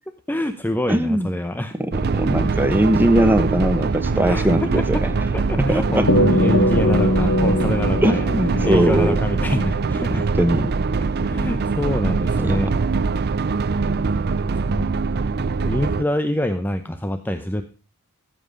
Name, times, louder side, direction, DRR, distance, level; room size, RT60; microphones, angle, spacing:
voice 1, 0.3-1.8 2.4-2.6 4.1-5.0 5.3-10.5 11.2-12.7 14.6-15.3 15.6-17.6, left 1 dB, 10° left, 9 dB, 0.7 m, -26 dB
voice 2, 0.9-1.3 1.8-5.1 5.6-6.0 8.0-9.2 10.1-10.7 12.4-12.8, right 1 dB, 10° right, 8 dB, 1.3 m, -20 dB
sound 1, 1.9-16.0, right 4 dB, 50° right, 0.5 m, -23 dB
sound 2, 6.1-10.7, left 1 dB, 85° left, 1.5 m, -22 dB
15.0 x 7.7 x 5.1 m, 0.35 s
head